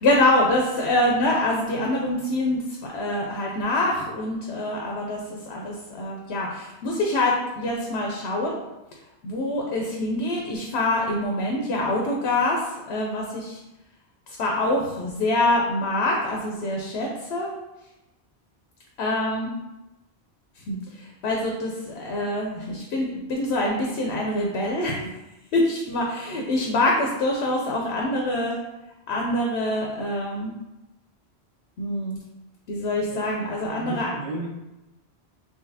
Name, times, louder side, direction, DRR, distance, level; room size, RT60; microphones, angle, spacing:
voice 1, 0.0-8.6 9.2-13.6 14.3-17.5 19.0-19.5 20.6-25.1 25.5-28.6 29.1-30.5 31.8-32.2 32.7-34.1, left 1 dB, 80° left, 0 dB, 0.9 m, -25 dB
voice 2, 33.6-34.5, right 1 dB, 50° right, -2 dB, 0.8 m, -34 dB
3.9 x 3.2 x 2.7 m, 0.97 s
omnidirectional pair, 1.1 m